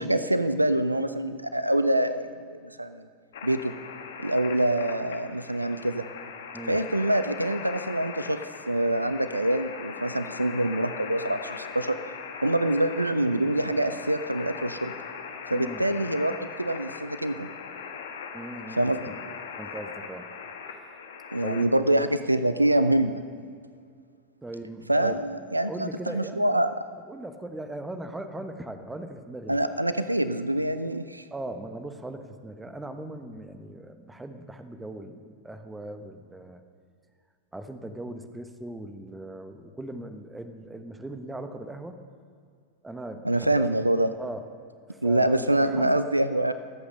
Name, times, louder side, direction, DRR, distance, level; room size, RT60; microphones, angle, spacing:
voice 1, 0.0-3.1 3.4-3.7 4.2-6.0 6.7-8.4 8.7-12.0 12.4-14.9 15.5-17.5 18.8-19.1 21.3-23.2 24.9-26.7 29.5-31.2 43.2-44.1 45.0-46.5, right 1 dB, 85° right, 12 dB, 0.5 m, -25 dB
sound 1, 3.3-21.6, left 6 dB, 60° left, 1.4 m, -40 dB
voice 2, 15.5-15.8 18.3-19.1 19.5-20.3 21.4-21.7 21.9-22.1 24.4-25.2 25.7-26.6 27.1-29.6 31.3-36.6 37.5-42.0 42.8-43.7 44.2-44.4 44.9-46.0, right 1 dB, 10° right, 8 dB, 1.1 m, -39 dB
24.5 x 8.5 x 5.4 m, 2.2 s
figure-of-eight pair, 90°, 0 cm